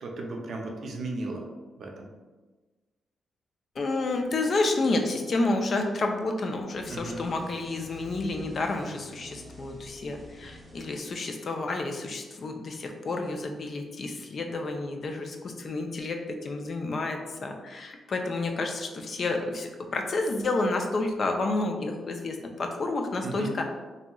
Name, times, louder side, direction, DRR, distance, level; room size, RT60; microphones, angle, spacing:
voice 1, 0.0-1.5 1.8-2.1 6.9-7.2 23.2-23.5, right 2 dB, 60° right, 1 dB, 0.5 m, -35 dB
voice 2, 3.8-23.6, left 2 dB, 45° left, 4 dB, 0.3 m, -30 dB
sound 1, 6.7-11.6, left 1 dB, 15° right, 0.7 m, -48 dB
2.9 x 2.7 x 2.3 m, 1.3 s
cardioid pair, 110°, 0 cm